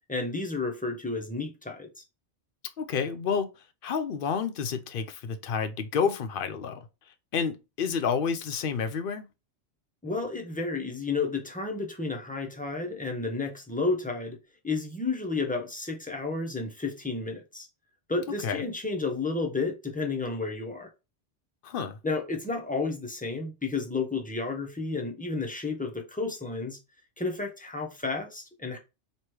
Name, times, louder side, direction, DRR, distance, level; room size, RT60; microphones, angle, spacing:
voice 1, 0.0-1.9 10.0-14.4 14.6-17.7 18.1-20.9 22.0-26.8 27.2-28.8, left 3 dB, 10° left, 0.6 m, -31 dB
voice 2, 2.8-3.5 3.8-6.9 7.3-9.3 18.4-18.7 21.6-22.0, left 6 dB, 55° left, 0.7 m, -29 dB
3.1 x 3.0 x 4.6 m
omnidirectional pair, 1.2 m